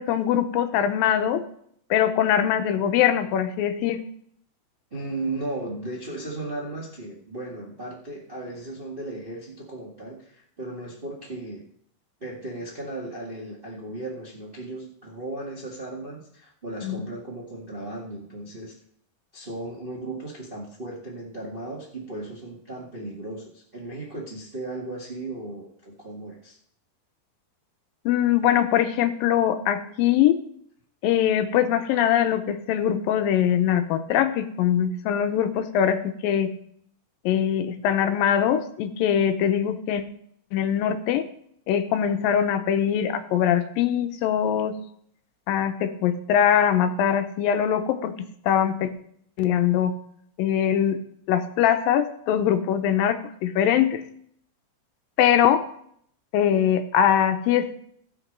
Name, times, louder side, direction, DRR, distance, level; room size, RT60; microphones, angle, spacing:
voice 1, 0.0-1.5 1.9-4.0 16.8-17.0 28.1-30.4 31.0-36.5 37.3-40.0 40.5-41.3 41.7-44.8 45.5-48.2 48.5-48.9 49.4-49.9 50.4-51.0 51.3-54.0 55.2-55.7 56.3-57.7, left 9 dB, 80° left, 9 dB, 2.5 m, -22 dB
voice 2, 4.9-11.6 12.2-18.7 19.3-26.6, right 2 dB, 35° right, -3 dB, 0.9 m, -36 dB
16.0 x 5.9 x 5.3 m, 0.67 s
omnidirectional pair, 4.0 m